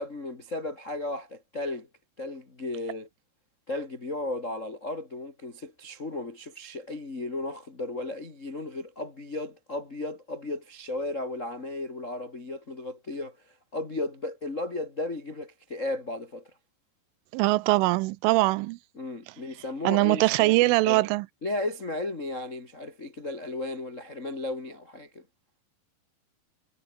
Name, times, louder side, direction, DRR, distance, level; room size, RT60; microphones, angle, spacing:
voice 1, 0.0-1.9 2.2-3.1 3.7-16.5 18.9-21.1 21.4-25.2, left 2 dB, 55° left, 0.8 m, -35 dB
voice 2, 17.3-18.8 19.8-21.3, right 21 dB, 85° right, 3.1 m, -22 dB
omnidirectional pair, 5.7 m